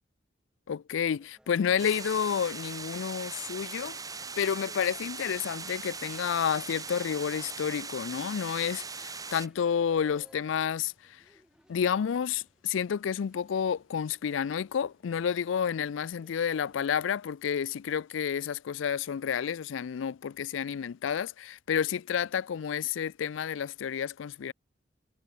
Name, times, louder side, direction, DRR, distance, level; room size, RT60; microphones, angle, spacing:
voice 1, 0.7-4.0 4.4-10.9 11.7-24.5, left 7 dB, 90° left, 0.4 m, -30 dB
sound 1, 1.1-16.7, equal, 5° right, 5.8 m, -60 dB
sound 2, 1.8-9.5, right 5 dB, 20° right, 3.1 m, -40 dB
head